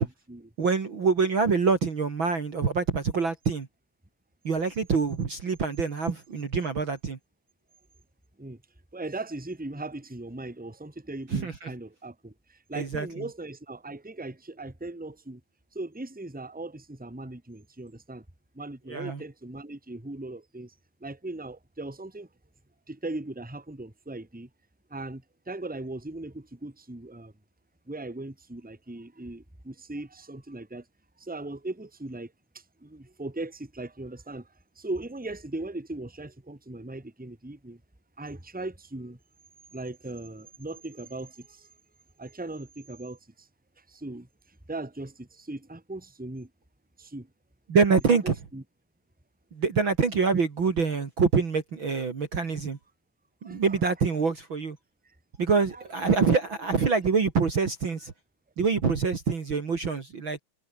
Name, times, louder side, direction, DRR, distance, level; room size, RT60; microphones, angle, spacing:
voice 1, 0.0-0.5 8.4-8.6 8.9-15.4 15.7-18.2 18.5-20.7 21.0-22.3 22.9-24.5 24.9-27.3 27.9-30.8 31.2-34.5 34.7-37.8 38.2-39.2 39.7-41.7 42.2-43.5 43.9-44.3 44.7-46.5 47.0-47.3 48.1-48.6 53.4-53.8 55.0-55.1 55.7-55.8, right 2 dB, 5° right, 2.8 m, -39 dB
voice 2, 0.6-3.7 4.4-7.2 11.3-11.7 12.7-13.3 18.9-19.2 47.7-48.3 49.5-52.8 53.4-54.8 55.4-58.1 58.6-60.4, right 5 dB, 40° right, 2.8 m, -25 dB
omnidirectional pair, 3.7 m